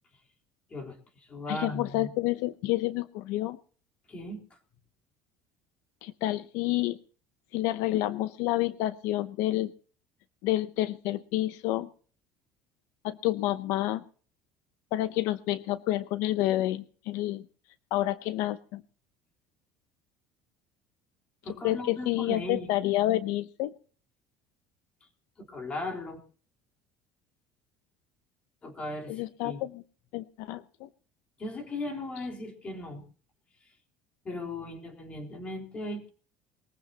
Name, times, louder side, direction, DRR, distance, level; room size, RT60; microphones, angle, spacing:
voice 1, 0.7-2.1 4.1-4.4 21.4-22.7 25.4-26.2 28.6-29.6 31.4-33.0 34.2-36.1, left 1 dB, 25° left, 2 dB, 3.7 m, -37 dB
voice 2, 1.5-3.6 6.0-7.0 7.5-9.7 10.4-11.9 13.0-14.0 14.9-17.4 17.9-18.8 21.6-23.7 29.1-29.8 30.1-30.9, left 16 dB, 70° left, 13 dB, 0.6 m, -29 dB
21.5 x 15.0 x 2.8 m, 0.42 s
cardioid pair, 150°, 5 cm